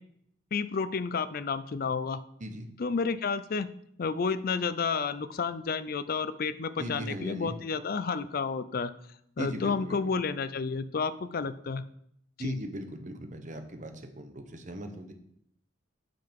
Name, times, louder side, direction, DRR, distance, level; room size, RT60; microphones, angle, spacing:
voice 1, 0.5-2.2 2.8-3.7 4.0-8.9 9.4-11.8 12.4-12.6, left 5 dB, 45° left, 13 dB, 0.4 m, -31 dB
voice 2, 2.4-2.7 6.8-7.6 9.4-10.1 12.4-15.1, right 1 dB, 40° right, 6 dB, 1.0 m, -39 dB
8.8 x 5.7 x 5.2 m, 0.73 s
head